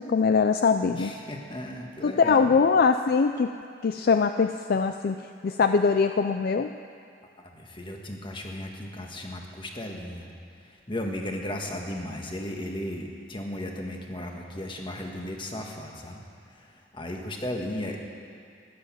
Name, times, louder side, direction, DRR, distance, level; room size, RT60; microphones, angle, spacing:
voice 1, 0.0-1.1 2.0-3.5 3.8-6.7, left 5 dB, 50° left, 8 dB, 0.4 m, -22 dB
voice 2, 0.9-2.5 7.4-10.3 10.6-16.2 16.5-18.0, left 1 dB, 25° left, 1 dB, 1.5 m, -35 dB
15.0 x 10.5 x 7.4 m, 2.3 s
head